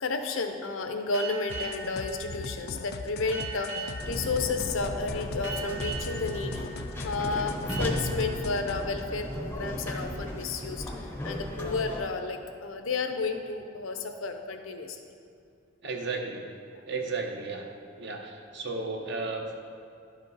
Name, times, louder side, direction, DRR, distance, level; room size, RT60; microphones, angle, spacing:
voice 1, 0.0-6.7 7.0-15.0 16.7-16.8, left 4 dB, 75° left, 5 dB, 0.7 m, -32 dB
sound 1, 1.1-10.4, right 4 dB, 75° right, 1.7 m, -42 dB
sound 2, 1.5-8.8, left 4 dB, 50° left, 0.3 m, -40 dB
sound 3, 4.0-12.1, equal, 10° left, 0.6 m, -36 dB
voice 2, 15.8-16.4 16.9-17.7 18.0-19.6, right 3 dB, 55° right, 3 dB, 0.8 m, -34 dB
11.0 x 5.1 x 4.0 m, 2.4 s
head